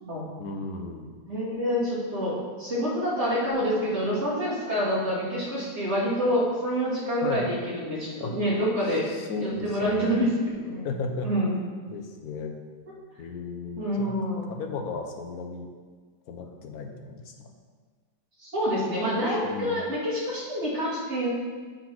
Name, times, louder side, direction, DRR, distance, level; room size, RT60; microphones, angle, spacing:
voice 1, 0.4-1.1 7.2-7.5 8.2-8.3 9.1-10.3 10.8-11.3 11.9-12.6 13.2-14.1 14.5-15.7 16.3-17.5 19.4-19.8, left 4 dB, 65° left, 4 dB, 1.2 m, -35 dB
voice 2, 1.3-9.1 9.4-10.8 11.2-11.6 13.8-14.5 18.4-21.3, equal, 40° right, -9 dB, 2.7 m, -27 dB
8.3 x 3.8 x 5.9 m, 1.5 s
omnidirectional pair, 1.8 m